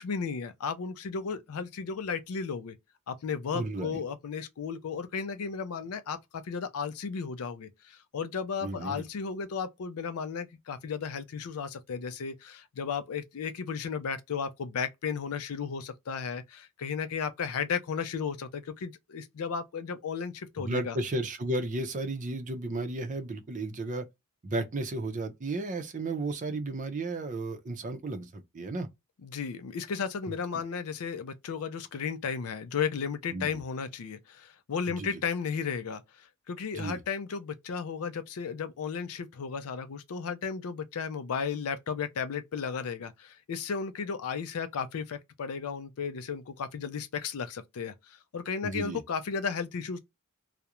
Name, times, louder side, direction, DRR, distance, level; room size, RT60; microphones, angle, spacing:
voice 1, 0.0-2.8 3.1-21.0 29.2-50.0, left 6 dB, 75° left, 0.4 m, -34 dB
voice 2, 3.5-4.0 8.6-9.0 20.6-24.1 24.4-28.9 30.3-30.4 33.3-33.5 34.9-35.2 36.7-37.0 48.6-49.0, right 2 dB, 35° right, 0.5 m, -33 dB
2.4 x 2.0 x 2.8 m
head